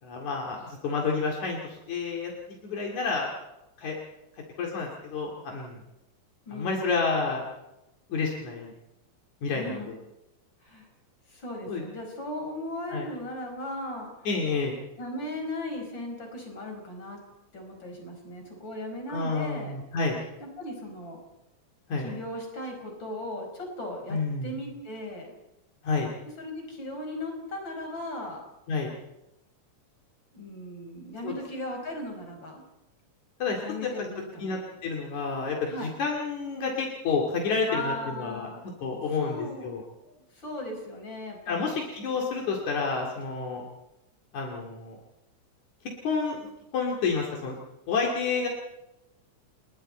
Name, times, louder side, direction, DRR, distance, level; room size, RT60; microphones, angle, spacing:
voice 1, 0.0-2.3 2.6-3.3 3.8-4.0 4.6-5.8 6.5-7.4 8.1-8.7 9.4-10.0 11.7-11.8 12.9-13.1 14.3-14.8 19.1-20.2 21.9-22.1 24.1-24.6 25.8-26.1 28.7-28.9 31.2-31.3 33.4-33.9 34.4-35.7 36.0-38.5 38.8-39.8 41.5-43.6 44.3-45.0 46.0-46.5 46.7-47.6 47.9-48.5, left 4 dB, 75° left, 0 dB, 3.8 m, -29 dB
voice 2, 6.5-7.2 9.5-9.9 10.6-10.9 11.3-14.1 15.0-17.2 17.5-19.7 20.4-21.2 22.0-25.3 26.4-28.4 30.3-32.6 33.6-34.6 35.7-35.9 37.7-38.6 39.2-41.8, left 1 dB, 40° left, 2 dB, 6.0 m, -37 dB
30.0 x 20.5 x 4.4 m, 0.91 s
omnidirectional pair, 3.4 m